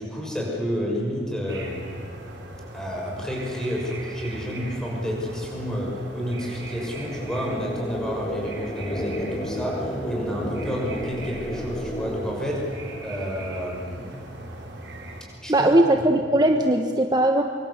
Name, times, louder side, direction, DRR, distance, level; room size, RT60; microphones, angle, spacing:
voice 1, 0.0-1.9 2.7-12.8 13.0-14.2 15.4-15.7, equal, 5° left, -2 dB, 6.2 m, -30 dB
sound 1, 1.5-15.2, right 1 dB, 65° right, 4.5 m, -39 dB
sound 2, 4.5-13.2, equal, 20° left, 1.8 m, -34 dB
voice 2, 15.5-17.4, right 1 dB, 20° right, 4 dB, 1.2 m, -19 dB
25.0 x 24.0 x 8.2 m, 2.2 s
head